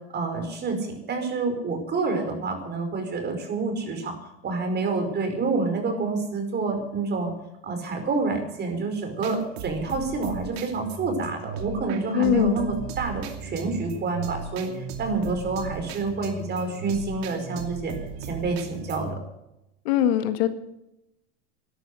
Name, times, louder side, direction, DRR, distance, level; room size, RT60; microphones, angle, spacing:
voice 1, 0.1-4.2 4.4-7.3 7.6-17.9 18.2-19.2, right 3 dB, 30° right, 5 dB, 5.1 m, -28 dB
sound 1, 9.2-19.2, right 5 dB, 75° right, 2.7 m, -37 dB
voice 2, 12.1-12.6 19.9-20.5, left 11 dB, 70° left, 10 dB, 1.8 m, -21 dB
13.0 x 12.0 x 7.9 m, 0.86 s
supercardioid pair, 115°, 32 cm